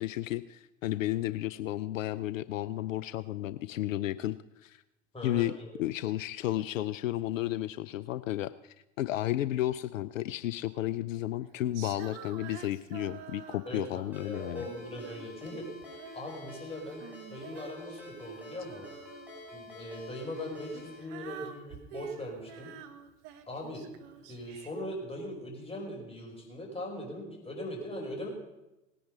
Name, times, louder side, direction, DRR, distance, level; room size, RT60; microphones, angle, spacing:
voice 1, 0.0-4.8 5.2-14.7, left 14 dB, 75° left, 16 dB, 0.5 m, -33 dB
voice 2, 5.1-5.7 13.7-15.7 16.1-18.9 19.5-22.7 23.5-23.8 24.2-28.3, left 1 dB, 15° left, -1 dB, 5.5 m, -40 dB
Female singing, 11.7-14.1 14.6-16.4 16.7-19.5 20.3-24.8, right 9 dB, 60° right, 1.3 m, -48 dB
Ringtone, 14.1-21.0, left 1 dB, 5° right, 6.0 m, -48 dB
18.5 x 10.0 x 5.3 m, 0.97 s
figure-of-eight pair, 70°, 39 cm